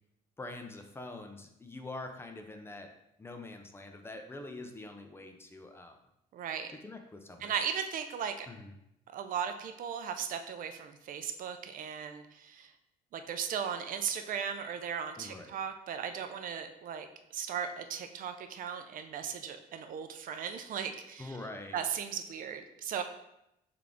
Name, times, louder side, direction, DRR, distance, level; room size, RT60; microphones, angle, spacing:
voice 1, 0.4-2.9 3.2-6.0 6.7-7.6 8.5-8.7 15.2-15.6 21.2-21.8, left 2 dB, 15° left, 5 dB, 0.5 m, -45 dB
voice 2, 6.3-6.7 7.4-8.5 9.1-12.7 13.1-17.1 17.3-21.4 21.7-23.0, right 7 dB, 55° right, 8 dB, 0.5 m, -37 dB
3.7 x 3.5 x 3.5 m, 0.83 s
cardioid pair, 110°, 17 cm